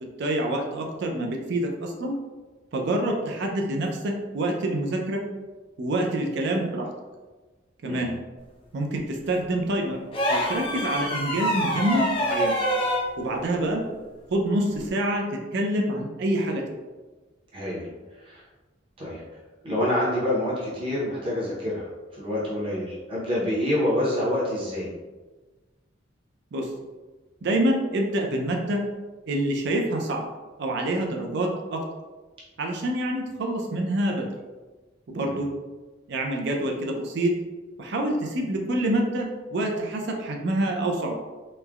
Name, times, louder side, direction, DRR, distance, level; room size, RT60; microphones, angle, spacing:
voice 1, 0.0-2.2 2.7-5.2 5.8-6.9 7.8-8.1 8.7-10.0 10.3-12.6 13.2-13.8 14.3-16.6 26.5-26.7 27.4-28.8 29.3-30.2 30.6-31.8 32.6-34.3 35.1-35.5 36.1-37.3 37.8-41.1, right 1 dB, 65° right, 1 dB, 0.4 m, -26 dB
sound 1, 10.1-13.1 14.8-14.9, equal, 30° left, 0.4 m, -25 dB
voice 2, 17.5-17.8 18.3-18.4 19.0-19.2 19.6-21.9 22.1-24.9 35.2-35.4, left 1 dB, 30° right, -7 dB, 0.7 m, -27 dB
3.1 x 2.1 x 2.3 m, 1.3 s
head